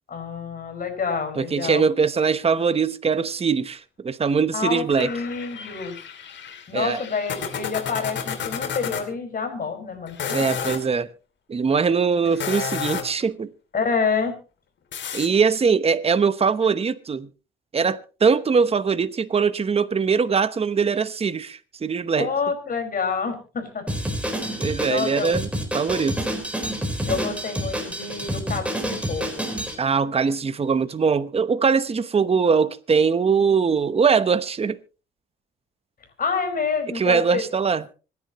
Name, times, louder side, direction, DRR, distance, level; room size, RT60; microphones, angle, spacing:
voice 1, 0.1-1.8 4.5-6.0 6.7-10.7 13.7-14.4 22.2-23.9 24.3-25.3 27.1-29.5 36.2-37.4, left 5 dB, 45° left, 5.2 m, -28 dB
voice 2, 1.4-5.1 6.7-7.0 10.3-11.1 11.5-13.5 15.1-17.3 17.7-22.3 24.6-25.5 25.7-26.2 29.8-34.8 36.9-37.8, right 5 dB, 30° right, 0.9 m, -21 dB
sound 1, 4.9-9.0 10.1-10.8 12.2-13.2 14.9-15.3, left 7 dB, 65° left, 2.8 m, -31 dB
Drum kit, 23.9-29.7, equal, 5° right, 4.2 m, -28 dB
25.5 x 10.5 x 3.0 m
cardioid pair, 90°, 20 cm